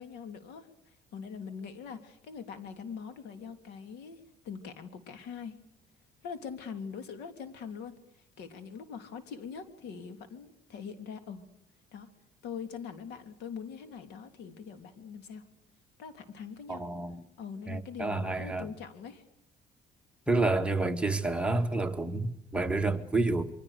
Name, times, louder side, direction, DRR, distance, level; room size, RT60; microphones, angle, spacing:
voice 1, 0.0-5.6 6.2-8.0 8.4-11.4 11.9-12.1 12.4-15.4 16.0-16.9 17.4-19.2, left 6 dB, 80° left, 3.4 m, -43 dB
voice 2, 16.7-17.2 17.7-18.7 20.3-23.5, right 2 dB, 5° right, 2.0 m, -29 dB
26.5 x 24.0 x 6.7 m
cardioid pair, 110°, 17 cm